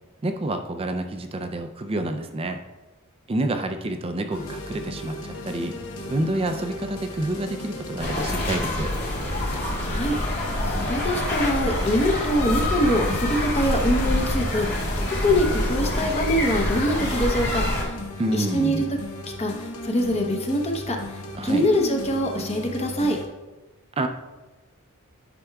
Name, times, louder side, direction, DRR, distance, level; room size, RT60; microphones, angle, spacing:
voice 1, 0.2-2.6 3.3-5.7 6.1-8.9 18.2-18.9 21.3-21.7 24.0-24.1, right 1 dB, 25° right, 6 dB, 0.4 m, -28 dB
sound 1, 4.3-23.3, left 1 dB, 70° left, 1.0 m, -36 dB
sound 2, 8.0-17.8, left 1 dB, 45° left, 1.9 m, -26 dB
voice 2, 9.8-17.9 18.3-18.8 19.4-19.5 19.8-23.2, equal, 30° left, 2 dB, 0.8 m, -24 dB
9.7 x 5.7 x 2.3 m, 1.2 s
head